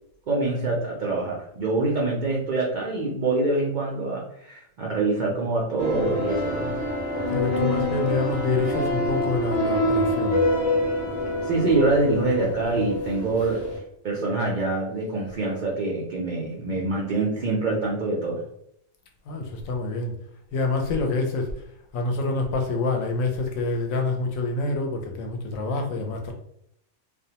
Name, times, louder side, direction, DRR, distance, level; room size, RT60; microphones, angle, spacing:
voice 1, 0.3-6.7 11.4-13.6 14.0-18.4, right 3 dB, 80° right, -3 dB, 0.4 m, -25 dB
sound 1, 5.8-13.8, left 1 dB, 40° left, 0.7 m, -26 dB
voice 2, 7.3-10.4 19.3-20.2 20.5-21.6 21.9-26.3, left 3 dB, 75° left, 3 dB, 1.0 m, -27 dB
2.5 x 2.1 x 2.8 m, 0.75 s
omnidirectional pair, 1.4 m